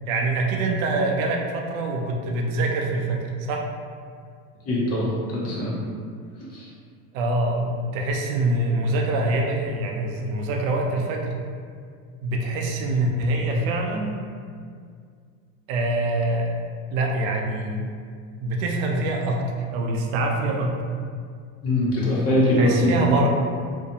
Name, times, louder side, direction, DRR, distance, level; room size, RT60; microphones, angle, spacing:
voice 1, 0.1-3.7 7.1-11.3 12.2-14.2 15.7-16.5 16.9-17.9 18.4-19.4 19.7-20.7 22.6-23.3, right 2 dB, 70° right, 1 dB, 0.6 m, -24 dB
voice 2, 4.6-5.7 6.5-6.7 21.6-23.1, left 1 dB, 35° left, -6 dB, 0.9 m, -22 dB
2.5 x 2.2 x 2.7 m, 2.1 s
hypercardioid pair, 95°, 43 cm